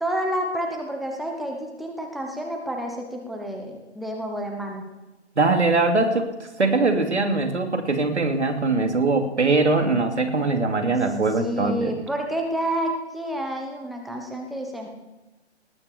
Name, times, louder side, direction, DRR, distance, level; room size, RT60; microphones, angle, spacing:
voice 1, 0.0-4.8 11.4-14.9, right 1 dB, ahead, 1 dB, 0.8 m, -29 dB
voice 2, 5.4-6.3 6.6-11.9, right 3 dB, 75° right, 5 dB, 2.8 m, -21 dB
19.0 x 8.9 x 6.7 m, 1.1 s
figure-of-eight pair, 140°, 35 cm